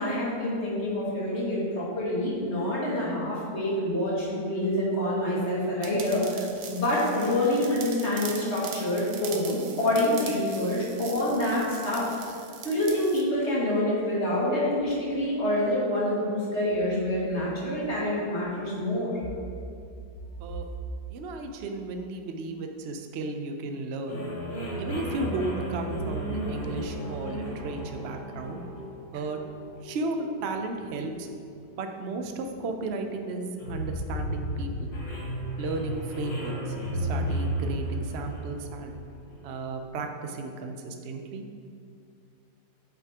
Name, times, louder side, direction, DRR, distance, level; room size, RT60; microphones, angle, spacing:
voice 1, 0.0-12.2 12.6-19.1, left 1 dB, 35° left, -7 dB, 2.3 m, -27 dB
sound 1, 5.8-13.2, right 6 dB, 65° right, 0.9 m, -42 dB
voice 2, 21.1-24.2 24.8-28.6 29.1-29.4 29.8-31.3 31.8-34.9 35.6-39.0 39.4-41.4, right 3 dB, 90° right, 4 dB, 0.5 m, -34 dB
sound 2, 24.1-39.5, right 1 dB, 90° left, 2.9 m, -34 dB
8.2 x 8.1 x 2.9 m, 2.4 s
omnidirectional pair, 2.0 m